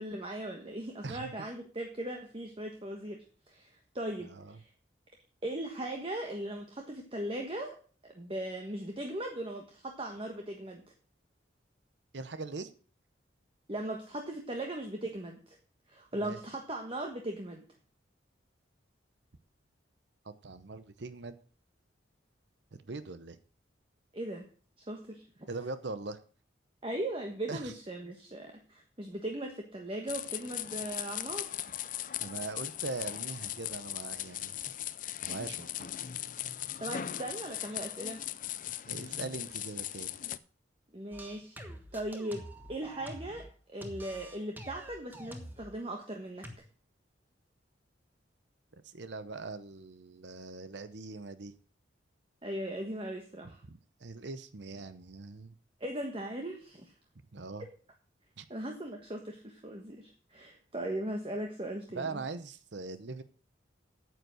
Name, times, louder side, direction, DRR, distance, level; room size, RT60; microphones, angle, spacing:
voice 1, 0.0-3.7 3.9-4.7 5.4-7.8 8.0-10.8 13.7-15.6 15.9-17.6 24.1-24.5 24.8-25.2 26.8-31.6 36.8-38.2 40.9-41.5 41.9-46.5 52.4-53.6 55.8-56.9 58.5-62.2, right 1 dB, 30° right, 2 dB, 1.3 m, -38 dB
voice 2, 1.0-1.3 4.3-4.6 12.1-12.7 16.1-16.4 20.2-21.3 22.9-23.4 25.5-26.2 27.5-27.7 32.2-34.7 35.2-35.9 38.9-40.1 48.8-51.5 53.7-55.5 57.3-57.7 58.4-58.5 61.9-63.2, right 3 dB, 65° right, 12 dB, 0.8 m, -41 dB
sound 1, 30.1-40.4, left 12 dB, 45° left, 0.5 m, -38 dB
sound 2, 41.1-43.5 43.8-45.7 46.4-46.5, equal, 10° right, 1.3 m, -46 dB
9.4 x 8.1 x 6.4 m, 0.41 s
head